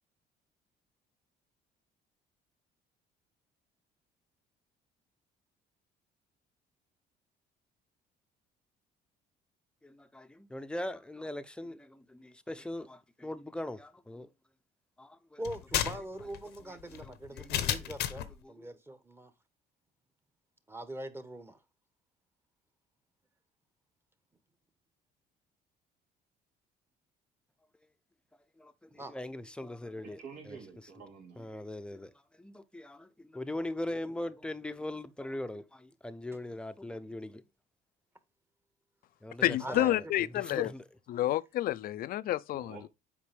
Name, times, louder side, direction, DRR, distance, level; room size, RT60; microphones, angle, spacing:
voice 1, 9.8-14.3 15.0-15.4 16.9-17.9 18.4-18.5 28.6-30.2 30.5-30.6 31.4-32.1 32.4-37.4 39.2-40.1 40.4-40.8, left 1 dB, 5° left, 0.7 m, -41 dB
sound 1, 15.4-18.4, left 11 dB, 85° left, 0.9 m, -33 dB
voice 2, 15.4-19.3 20.7-21.6 28.9-29.2 39.6-40.0, right 1 dB, 15° right, 1.1 m, -42 dB
voice 3, 30.0-31.5 42.5-42.9, right 5 dB, 75° right, 2.6 m, -49 dB
voice 4, 39.4-40.7 41.1-42.8, left 14 dB, 60° left, 0.5 m, -29 dB
8.4 x 5.1 x 3.4 m
cardioid pair, 110°, 17 cm